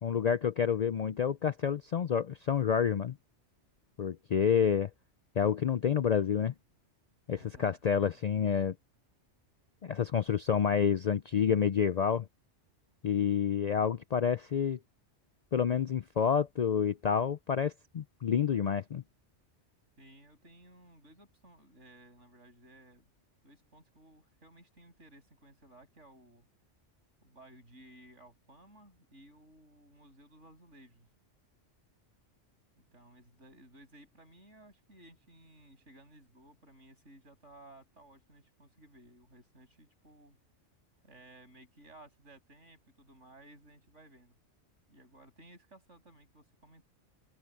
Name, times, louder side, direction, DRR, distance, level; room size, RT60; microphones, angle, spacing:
voice 1, 0.0-3.1 4.0-4.9 5.4-6.5 7.3-8.7 9.8-12.3 13.0-14.8 15.5-19.0, left 7 dB, 60° left, 0.4 m, -28 dB
voice 2, 7.3-8.2 20.0-23.1 23.4-26.4 27.2-31.1 32.9-40.4 41.0-44.3 44.9-46.9, right 1 dB, 80° right, 8.6 m, -57 dB
omnidirectional pair, 1.2 m